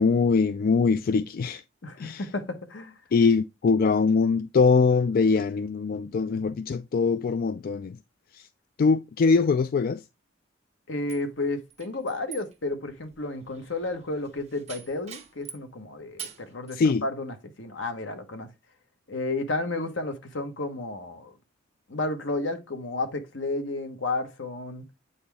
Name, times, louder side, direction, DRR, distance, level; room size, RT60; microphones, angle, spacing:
voice 1, 0.0-1.6 2.0-2.2 3.1-8.0 8.8-10.0 16.7-17.0, left 4 dB, 50° left, 0.3 m, -22 dB
voice 2, 1.8-3.0 10.9-18.5 19.1-21.4 21.9-24.9, left 2 dB, 75° left, 1.3 m, -32 dB
sound 1, 11.1-15.7 16.2-16.8, right 8 dB, 35° right, 1.1 m, -45 dB
8.6 x 4.2 x 3.4 m
head